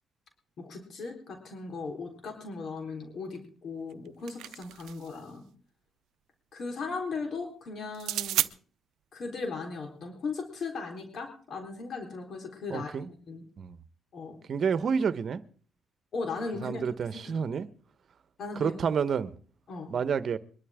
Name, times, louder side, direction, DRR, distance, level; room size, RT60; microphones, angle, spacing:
voice 1, 0.6-5.4 6.5-8.5 9.1-13.4 14.1-14.4 16.1-16.8 17.1-17.6 18.4-18.7 19.7-19.9, left 4 dB, 60° left, 3.9 m, -37 dB
sound 1, 3.9-5.2 7.9-8.5, right 13 dB, 85° right, 0.6 m, -32 dB
voice 2, 12.7-13.1 13.6-13.8 14.5-15.4 16.6-17.7 18.6-19.3 19.9-20.4, right 6 dB, 55° right, 1.1 m, -29 dB
22.5 x 12.5 x 3.6 m
cardioid pair, 90°, 0 cm